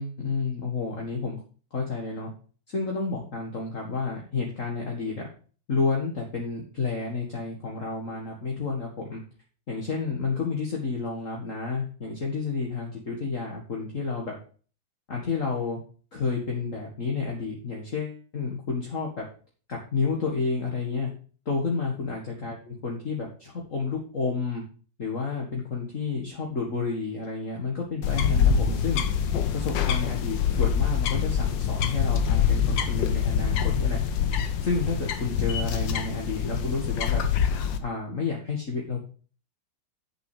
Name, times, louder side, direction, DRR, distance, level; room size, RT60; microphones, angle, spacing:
voice 1, 0.0-1.4 1.7-2.3 2.7-5.3 5.7-9.2 9.7-14.3 15.1-15.8 16.1-19.2 19.7-21.1 21.5-24.6 25.0-29.0 29.5-34.0 34.6-37.2 37.8-39.0, left 4 dB, 40° left, -1 dB, 2.2 m, -30 dB
sound 1, 28.0-37.8, left 7 dB, 70° left, 1.7 m, -25 dB
8.8 x 7.6 x 5.0 m, 0.39 s
omnidirectional pair, 2.1 m